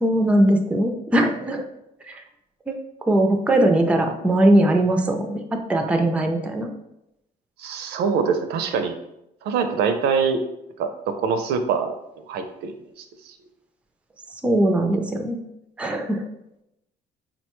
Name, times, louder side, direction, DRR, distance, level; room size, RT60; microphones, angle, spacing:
voice 1, 0.0-1.6 2.1-2.2 2.7-2.8 3.1-6.7 14.4-15.4 15.8-16.2, right 1 dB, 5° right, 4 dB, 0.3 m, -20 dB
voice 2, 7.6-8.9 9.4-10.4 10.8-11.9 12.3-13.3, right 5 dB, 75° right, 8 dB, 0.4 m, -24 dB
3.8 x 2.2 x 2.9 m, 0.84 s
cardioid pair, 110°, 17 cm